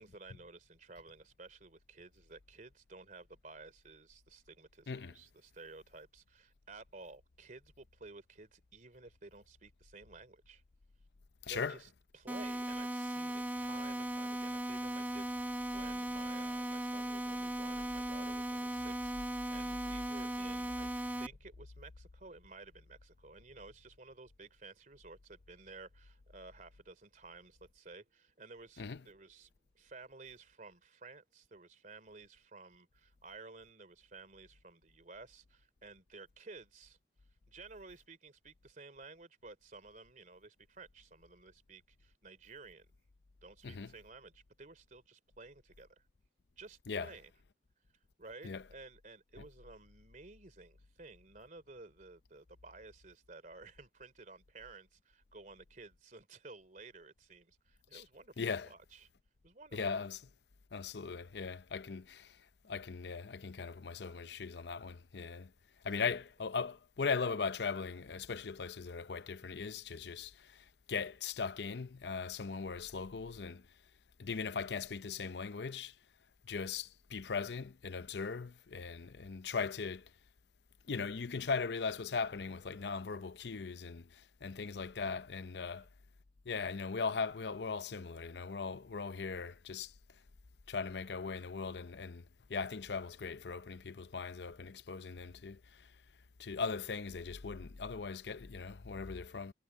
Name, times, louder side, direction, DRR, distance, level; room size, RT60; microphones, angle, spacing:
voice 1, 0.0-10.6 11.5-37.0 37.5-42.9 43.4-46.0 46.6-47.3 48.2-59.1 59.4-59.8 65.9-66.1 85.6-85.7, right 3 dB, 45° right, 3.0 m, -54 dB
sound 1, 12.3-21.3, right 1 dB, 10° right, 1.2 m, -38 dB
voice 2, 58.4-58.7 59.7-60.2 60.7-62.3 62.6-65.5 65.8-73.6 74.2-75.9 76.5-80.0 80.9-85.9 86.5-89.9 90.7-92.2 92.5-95.6 96.4-99.5, left 5 dB, 70° left, 0.6 m, -39 dB
head